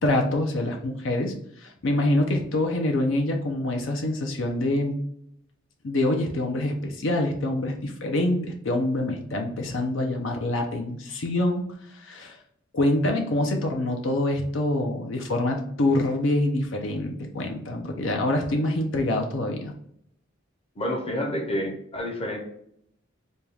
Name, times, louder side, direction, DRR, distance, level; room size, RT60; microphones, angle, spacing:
voice 1, 0.0-5.0 5.8-11.6 11.9-12.4 12.7-19.7, left 1 dB, 75° left, 3 dB, 0.6 m, -25 dB
voice 2, 20.8-22.4, equal, 30° left, 2 dB, 0.7 m, -29 dB
4.3 x 2.3 x 3.3 m, 0.71 s
head